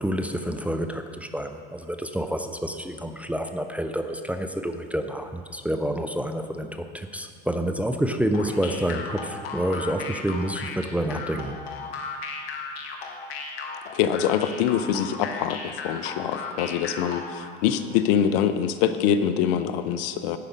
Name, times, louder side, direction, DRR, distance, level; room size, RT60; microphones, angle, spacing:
voice 1, 0.0-11.6, right 1 dB, 5° right, 6 dB, 0.5 m, -28 dB
sound 1, 8.3-17.5, left 4 dB, 80° left, 1.0 m, -36 dB
voice 2, 13.9-20.4, left 9 dB, 65° left, 11 dB, 0.6 m, -24 dB
10.5 x 5.0 x 5.4 m, 2.1 s
hypercardioid pair, 80°, 30 cm